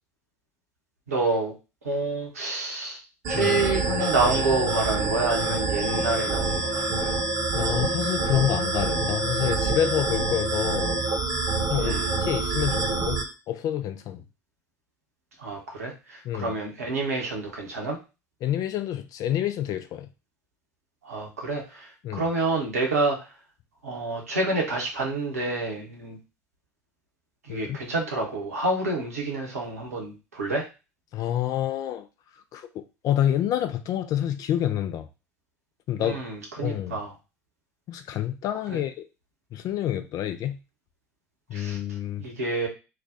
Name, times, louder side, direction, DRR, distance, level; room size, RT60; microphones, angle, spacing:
voice 1, 1.1-1.5 1.8-3.0 3.3-7.2 11.8-12.0 15.4-18.0 21.0-23.2 23.8-26.2 27.5-30.6 36.0-37.1 38.7-38.8 41.5-41.8 42.2-42.7, right 3 dB, 85° right, 1.1 m, -28 dB
sound 1, 3.2-13.2, right 3 dB, 55° right, 0.9 m, -26 dB
voice 2, 7.5-11.0 11.7-14.2 16.2-16.6 18.4-20.1 22.0-22.3 27.5-27.8 31.1-32.1 32.5-35.1 35.9-36.2 36.6-37.0 37.9-39.1 39.5-40.6 41.5-42.2, left 11 dB, 50° left, 0.5 m, -28 dB
3.2 x 2.3 x 3.8 m
figure-of-eight pair, 65°, 8 cm